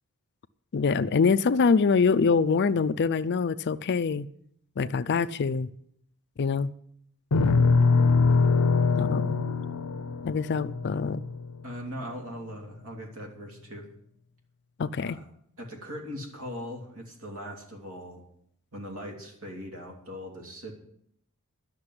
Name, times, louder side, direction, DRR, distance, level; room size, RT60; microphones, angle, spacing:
voice 1, 0.7-4.3 4.8-5.7 6.4-6.7 9.0-9.4 10.2-11.2 14.8-15.2, left 5 dB, 50° left, 0.4 m, -24 dB
sound 1, 7.3-11.7, left 4 dB, 80° left, 0.7 m, -23 dB
voice 2, 11.6-13.9 15.0-15.2 15.6-18.2 18.7-20.7, equal, 65° right, 2.9 m, -40 dB
11.5 x 6.7 x 9.5 m
head